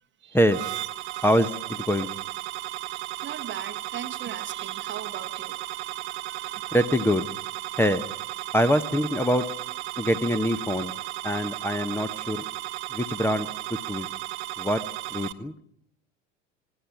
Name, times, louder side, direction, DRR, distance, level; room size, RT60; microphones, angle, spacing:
sound 1, 0.5-15.3, right 16 dB, 60° right, 1.2 m, -35 dB
voice 1, 1.2-2.1 6.7-7.3 7.8-8.0 8.5-9.4 10.0-10.9 11.2-12.4 12.9-14.1 14.6-14.8 15.1-15.5, equal, 5° left, 1.0 m, -24 dB
voice 2, 3.2-6.8, right 9 dB, 30° right, 1.2 m, -39 dB
27.0 x 18.5 x 5.9 m
figure-of-eight pair, 75°, 37 cm